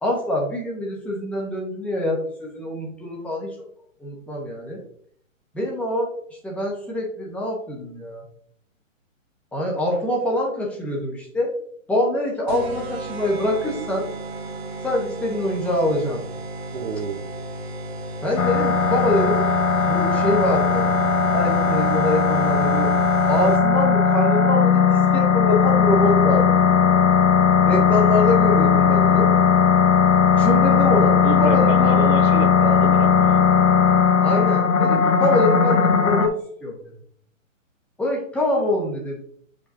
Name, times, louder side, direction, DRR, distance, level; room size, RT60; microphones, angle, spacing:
voice 1, 0.0-3.5 4.0-4.8 5.5-6.1 6.4-8.2 9.5-11.5 11.9-14.1 14.8-16.2 18.2-19.4 19.9-20.9 21.3-22.9 23.3-27.0 27.6-29.3 30.4-32.0 34.2-36.3 36.6-36.8 38.0-39.2, left 1 dB, 5° left, -2 dB, 0.9 m, -24 dB
sound 1, 12.5-23.9, right 1 dB, 50° right, 1.3 m, -34 dB
voice 2, 16.7-17.3 31.2-33.5, right 6 dB, 75° right, 7 dB, 1.0 m, -29 dB
sound 2, 18.4-36.3, left 6 dB, 70° left, 1.0 m, -18 dB
6.9 x 5.1 x 2.6 m, 0.62 s
hypercardioid pair, 155°, 40 cm